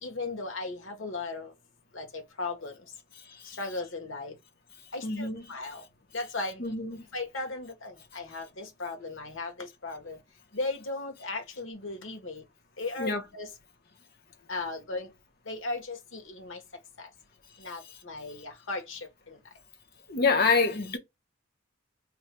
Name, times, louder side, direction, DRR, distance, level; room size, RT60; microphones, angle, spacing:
voice 1, 0.0-1.5 1.9-2.7 3.6-4.3 4.9-5.8 6.1-6.6 7.1-10.2 10.5-12.4 12.8-13.5 14.5-15.1 15.5-16.6 17.0-17.1 17.6-19.0, left 3 dB, 65° left, 1.2 m, -36 dB
voice 2, 3.3-3.6 5.0-5.5 6.6-7.0 13.0-13.2 17.8-18.0 20.1-21.0, left 4 dB, 45° left, 0.9 m, -27 dB
4.4 x 3.2 x 2.2 m
head